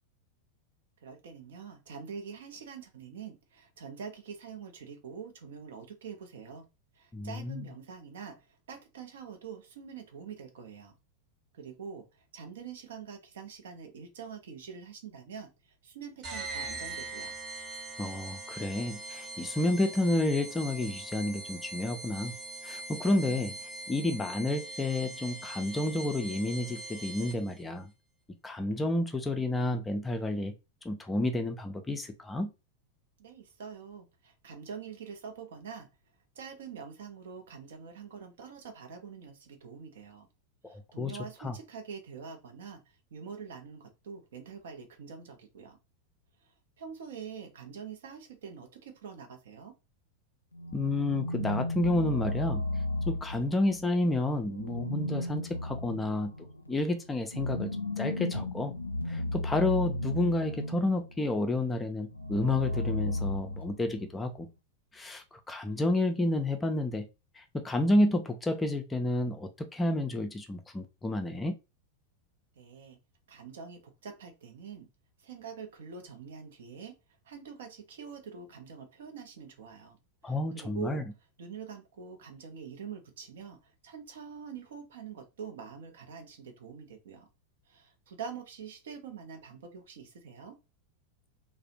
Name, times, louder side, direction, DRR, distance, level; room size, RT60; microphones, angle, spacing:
voice 1, 1.0-6.7 6.9-10.9 11.5-17.3 33.2-35.9 36.4-40.3 40.7-42.8 43.1-45.8 46.8-49.7 72.6-73.0 73.3-74.9 75.2-77.0 77.2-80.0 80.2-81.0 81.4-87.3 87.7-90.6, right 6 dB, 60° right, 0.6 m, -45 dB
voice 2, 7.1-7.7 18.0-22.3 22.6-23.5 23.9-27.9 28.4-30.5 30.8-32.5 40.6-41.1 41.4-41.6 50.7-52.6 53.1-56.3 56.7-57.7 58.0-58.7 59.1-64.5 64.9-67.1 67.4-71.5 80.2-81.0, left 2 dB, 10° left, 0.4 m, -30 dB
sound 1, 16.2-27.6, right 2 dB, 35° right, 0.9 m, -42 dB
sound 2, 50.5-53.8 54.5-61.1 62.1-64.0, left 1 dB, 85° left, 0.3 m, -34 dB
2.4 x 2.0 x 2.7 m
figure-of-eight pair, 90°, 0 cm